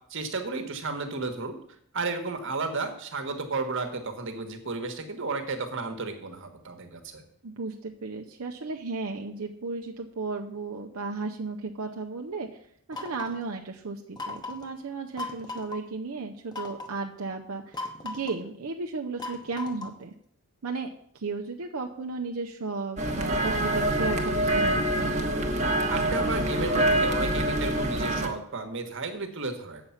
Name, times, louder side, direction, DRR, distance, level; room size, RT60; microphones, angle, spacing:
voice 1, 0.1-1.6 1.9-7.2 25.9-29.8, right 3 dB, 60° right, 7 dB, 1.3 m, -33 dB
voice 2, 7.4-12.6 12.9-20.1 20.6-20.9 21.1-25.1, right 3 dB, 75° right, 2 dB, 0.7 m, -34 dB
sound 1, 12.9-13.4 14.2-14.7 15.2-15.8 16.5-17.0 17.7-18.4 19.2-20.0, left 3 dB, 20° left, 1.0 m, -37 dB
sound 2, 23.0-28.3, right 1 dB, 35° right, 1.1 m, -25 dB
8.3 x 6.9 x 5.7 m, 0.68 s
head